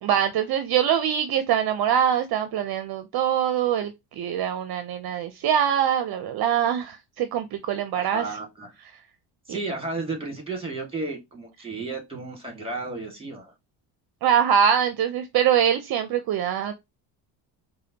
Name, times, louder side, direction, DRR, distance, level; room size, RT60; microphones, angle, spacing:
voice 1, 0.0-8.4 9.5-9.6 14.2-16.7, right 9 dB, 50° right, 0.6 m, -23 dB
voice 2, 7.9-8.7 9.5-13.5, right 3 dB, 10° right, 1.9 m, -33 dB
4.9 x 2.3 x 2.8 m
supercardioid pair, 80°, 47 cm